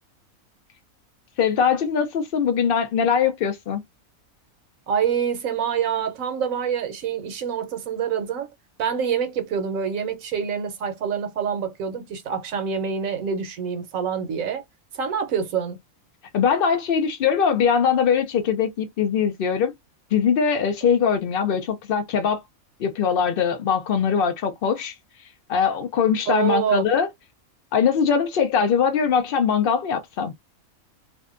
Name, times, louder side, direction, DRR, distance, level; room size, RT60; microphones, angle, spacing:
voice 1, 1.4-3.8 16.3-19.7 20.1-22.4 22.8-24.9 25.5-27.1 27.7-30.3, left 7 dB, 85° left, 0.5 m, -21 dB
voice 2, 4.9-8.5 8.8-14.6 14.9-15.8 26.3-26.8, right 7 dB, 70° right, 1.0 m, -26 dB
2.6 x 2.2 x 2.4 m
omnidirectional pair, 1.5 m